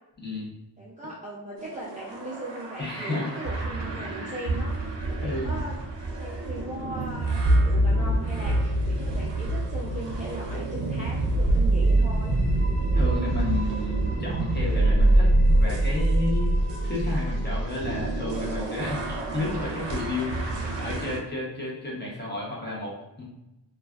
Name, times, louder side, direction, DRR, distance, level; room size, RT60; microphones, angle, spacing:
voice 1, 0.2-0.5 2.8-3.3 5.2-5.5 12.8-16.5 16.8-23.2, left 2 dB, 25° left, -5 dB, 0.8 m, -32 dB
voice 2, 0.8-5.8 6.2-12.4, right 1 dB, 20° right, -7 dB, 0.4 m, -38 dB
sound 1, 1.6-21.2, right 1 dB, 75° right, 0.5 m, -25 dB
sound 2, 11.8-18.5, equal, 75° left, 1.1 m, -44 dB
2.4 x 2.2 x 2.3 m, 0.94 s
wide cardioid pair, 90°, 43 cm